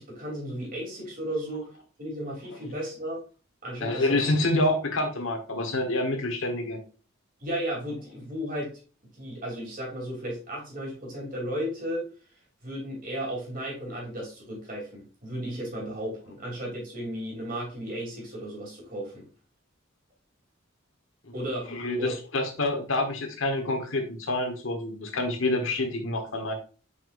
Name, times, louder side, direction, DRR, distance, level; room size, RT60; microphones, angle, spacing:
voice 1, 0.0-1.7 2.0-3.2 3.6-4.2 7.4-8.7 9.2-12.0 12.6-19.3 21.3-21.7 22.0-22.1, equal, 45° right, -2 dB, 3.0 m, -34 dB
voice 2, 3.8-6.8 21.7-26.5, left 2 dB, 70° left, 4 dB, 1.3 m, -27 dB
7.0 x 5.3 x 2.5 m, 0.35 s
head